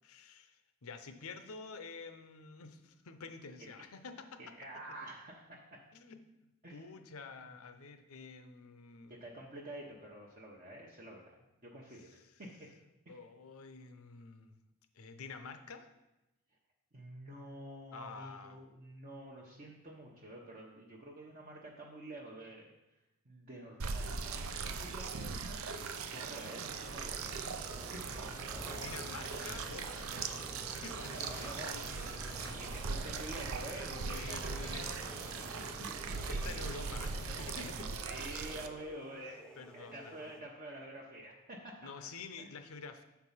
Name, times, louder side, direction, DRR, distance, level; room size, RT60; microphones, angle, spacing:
voice 1, 0.0-4.5 5.9-6.2 6.7-9.2 12.0-12.1 13.1-14.5 15.0-15.9 17.9-18.6 28.7-30.4 30.8-32.7 34.1-35.0 36.3-37.9 39.6-40.3 41.8-43.0, left 4 dB, 75° left, 9 dB, 0.7 m, -49 dB
voice 2, 4.4-5.8 6.6-6.8 9.1-11.4 11.6-12.7 13.1-13.2 16.9-22.7 23.2-25.8 26.1-27.5 27.9-28.2 29.3-29.4 31.2-32.1 32.5-36.4 37.6-42.1 42.4-42.5, right 1 dB, 40° right, -4 dB, 0.9 m, -49 dB
sound 1, 23.8-38.7, right 5 dB, 70° right, 0.5 m, -40 dB
sound 2, 26.2-40.4, equal, 5° left, 0.3 m, -56 dB
sound 3, 27.7-38.0, equal, 15° right, 1.1 m, -49 dB
7.1 x 4.7 x 5.6 m, 0.98 s
head